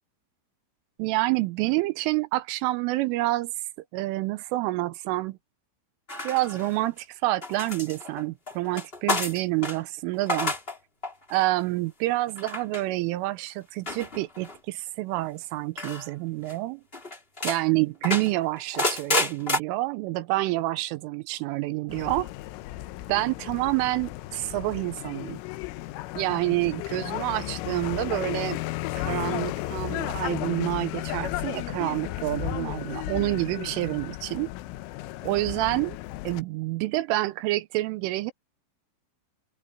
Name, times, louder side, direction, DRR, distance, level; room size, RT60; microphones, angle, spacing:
voice 1, 1.0-3.5 3.9-5.4 6.2-10.5 11.3-16.8 17.4-22.3 23.1-25.4 26.2-28.6 28.9-34.5 35.2-36.0 36.2-38.3, right 19 dB, 80° right, 3.2 m, -28 dB
sound 1, 6.1-7.0 7.4-9.8 10.1-10.8 11.0-11.4 12.4-12.8 13.9-14.6 15.8-16.1 16.5-16.6 16.9-17.6 18.0-19.6, left 2 dB, 15° left, 2.6 m, -30 dB
sound 2, 21.9-36.4, left 17 dB, 85° left, 3.3 m, -34 dB
omnidirectional pair, 5.9 m